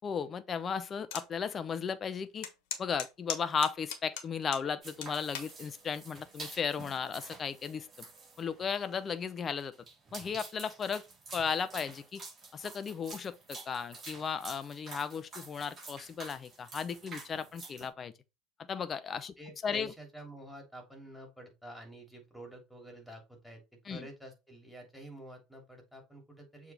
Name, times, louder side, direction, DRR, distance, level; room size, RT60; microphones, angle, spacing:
voice 1, 0.0-2.5 2.8-7.9 8.4-9.7 10.1-11.0 11.3-12.2 12.5-18.1 18.7-19.3 19.6-19.9 23.9-24.1, left 6 dB, 30° left, 0.7 m, -35 dB
sound 1, 1.1-1.3 1.8-1.9 2.4-4.7 5.0-5.5 6.2-6.5, left 8 dB, 60° left, 1.3 m, -38 dB
sound 2, 4.8-17.9, right 3 dB, 25° right, 3.1 m, -49 dB
voice 2, 19.4-23.6 23.9-26.7, right 1 dB, ahead, 3.0 m, -49 dB
6.9 x 3.6 x 4.3 m
figure-of-eight pair, 70°, 0 cm